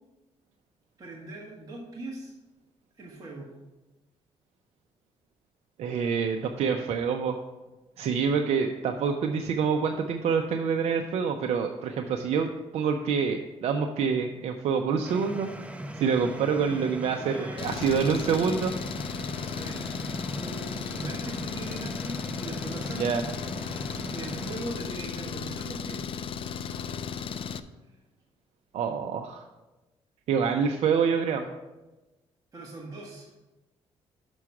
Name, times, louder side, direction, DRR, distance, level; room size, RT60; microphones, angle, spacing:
voice 1, 1.0-2.3 3.0-3.5 17.2-18.2 19.5-19.9 20.4-23.2 24.1-26.1 32.5-33.3, right 2 dB, 35° right, -3 dB, 1.5 m, -40 dB
voice 2, 5.8-7.4 8.0-15.5 16.0-18.7 22.9-23.2 28.7-29.4 30.3-31.5, right 6 dB, 75° right, 4 dB, 0.6 m, -26 dB
sound 1, 15.0-24.6, right 1 dB, 10° right, 0.6 m, -40 dB
Engine, 17.6-27.6, left 6 dB, 55° left, 0.5 m, -35 dB
6.2 x 6.0 x 5.8 m, 1.1 s
cardioid pair, 100°, 11 cm